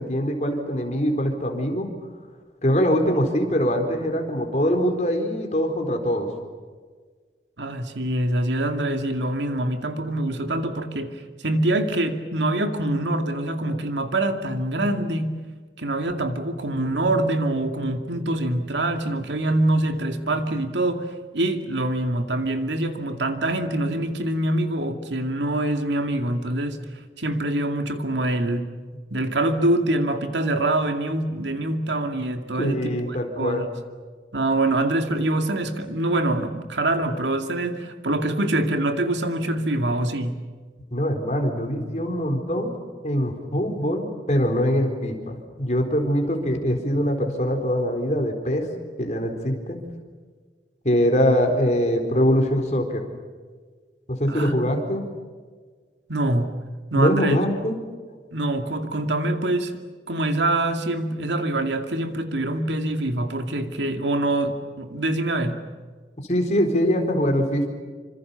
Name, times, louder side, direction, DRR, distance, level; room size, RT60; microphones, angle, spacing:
voice 1, 0.0-1.9 2.6-6.3 32.6-33.7 40.9-42.7 43.0-48.7 49.0-49.8 50.8-53.0 54.1-55.0 56.9-57.8 66.3-67.7, equal, 40° left, 4 dB, 4.1 m, -23 dB
voice 2, 7.6-15.4 15.8-26.8 27.2-28.7 29.1-33.0 33.4-33.7 34.3-40.4 54.3-54.7 56.1-56.5 56.9-57.4 58.3-59.8 60.1-65.6, right 1 dB, 85° right, 6 dB, 2.4 m, -25 dB
27.5 x 26.0 x 7.0 m, 1.5 s
head